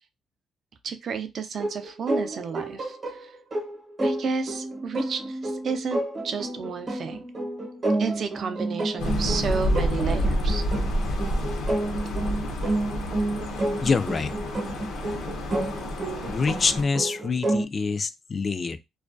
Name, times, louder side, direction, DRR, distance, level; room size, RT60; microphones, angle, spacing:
voice 1, 0.8-3.3 4.0-7.2 8.0-10.6, right 5 dB, 55° right, 0.4 m, -32 dB
sound 1, 1.6-17.7, right 2 dB, 40° right, 0.8 m, -30 dB
sound 2, 9.0-16.8, equal, 80° left, 0.6 m, -29 dB
voice 2, 13.8-14.3 16.3-18.8, left 4 dB, 40° left, 0.3 m, -25 dB
2.2 x 2.2 x 2.5 m
cardioid pair, 90°, 0 cm